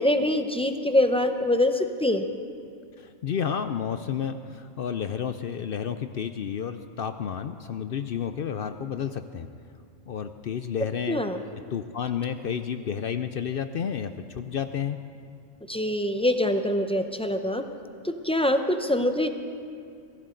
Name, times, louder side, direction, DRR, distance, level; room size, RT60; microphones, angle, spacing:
voice 1, 0.0-2.3 11.1-11.4 15.7-17.6 18.0-19.3, left 1 dB, 10° left, 7 dB, 0.4 m, -24 dB
voice 2, 3.0-9.5 10.1-11.2 11.7-15.0, left 8 dB, 60° left, 10 dB, 0.6 m, -31 dB
23.0 x 16.0 x 3.8 m, 2.4 s
omnidirectional pair, 1.3 m